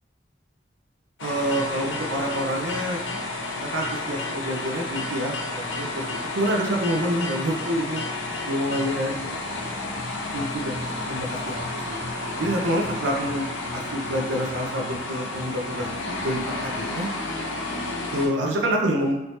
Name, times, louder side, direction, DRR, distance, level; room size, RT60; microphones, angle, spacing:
sound 1, 1.2-18.3, left 2 dB, 80° left, 0.6 m, -31 dB
voice 1, 1.2-3.0 3.6-8.0 8.4-9.4 10.3-12.0 12.4-13.5 13.7-17.1 18.1-19.2, equal, 75° right, 0 dB, 0.5 m, -27 dB
3.2 x 3.1 x 2.7 m, 0.98 s
head